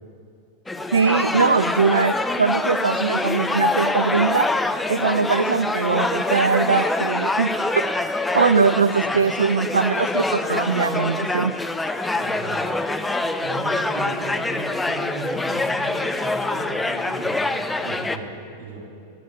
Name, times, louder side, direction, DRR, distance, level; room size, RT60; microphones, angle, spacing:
sound 1, 0.7-18.2, left 2 dB, 5° left, 0.5 m, -25 dB
voice 1, 0.9-4.5 4.9-7.5 8.3-11.5, right 5 dB, 75° right, 12 dB, 0.3 m, -21 dB
voice 2, 12.1-12.7 13.4-18.9, right 3 dB, 55° right, 0 dB, 3.4 m, -36 dB
12.5 x 9.7 x 7.9 m, 2.6 s
figure-of-eight pair, 90°, 0 cm